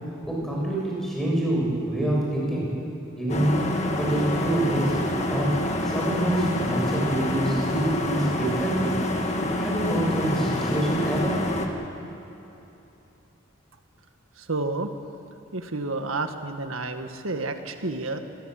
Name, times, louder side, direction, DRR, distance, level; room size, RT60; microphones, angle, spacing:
voice 1, 0.3-2.7 3.2-3.6 4.0-5.0 5.3-5.5 5.8-8.9 9.6-11.4 11.7-11.8, right 1 dB, ahead, -4 dB, 6.8 m, -26 dB
sound 1, 3.3-11.7, left 1 dB, 35° left, 1.8 m, -27 dB
voice 2, 14.4-14.9 15.5-18.2, right 3 dB, 85° right, 6 dB, 1.8 m, -30 dB
25.5 x 19.5 x 7.8 m, 3.0 s
head